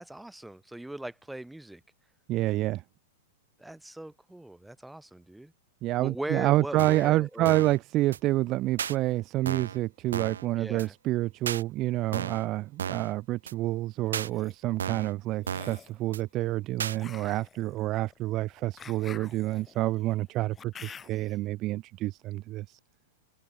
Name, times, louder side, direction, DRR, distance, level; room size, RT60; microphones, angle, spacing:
voice 1, 0.0-1.8 3.6-5.5 6.0-7.7 10.6-10.9, right 1 dB, 5° right, 3.9 m, -39 dB
voice 2, 2.3-2.8 5.8-22.8, right 17 dB, 40° right, 0.8 m, -28 dB
sound 1, 6.8-7.1 7.4-7.8 8.1-8.2 8.8-8.9 9.5-9.8 10.1-10.4 10.8-10.9 11.5-11.6 12.1-12.5 12.8-13.1 13.5-13.6 14.1-14.3 14.8-15.1 15.5-15.8 16.1-16.2 16.8-17.0, right 8 dB, 85° right, 1.7 m, -33 dB
sound 2, 14.1-14.5 15.4-16.0 16.9-21.4, left 6 dB, 20° left, 4.4 m, -48 dB
hypercardioid pair, 115°, 0 cm